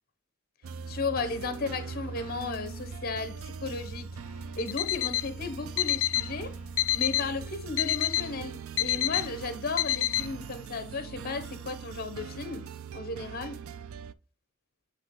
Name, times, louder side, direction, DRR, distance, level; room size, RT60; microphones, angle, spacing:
sound 1, 0.6-14.1, right 5 dB, 80° right, 0.4 m, -41 dB
voice 1, 0.9-4.1 4.6-6.6 6.9-13.6, left 4 dB, 45° left, 0.9 m, -35 dB
Alarm, 4.6-5.3 5.8-6.3 6.8-7.3 7.8-8.3 8.8-9.3 9.8-10.3, left 14 dB, 80° left, 0.4 m, -27 dB
7.6 x 3.3 x 3.7 m
head